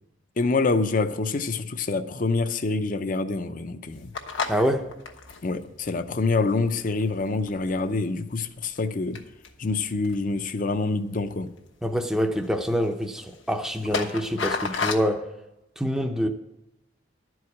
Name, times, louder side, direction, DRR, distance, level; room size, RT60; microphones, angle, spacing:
voice 1, 0.4-4.1 5.4-9.2 9.6-11.5, left 3 dB, 45° left, 0.6 m, -26 dB
sound 1, 3.9-7.9 8.3-8.9 9.1-10.5 11.1-11.7 11.9-12.1 12.4-15.0, left 5 dB, 80° left, 1.2 m, -34 dB
voice 2, 4.5-4.9 11.8-15.3 15.8-16.3, equal, 5° right, 0.6 m, -26 dB
11.5 x 4.8 x 8.4 m
head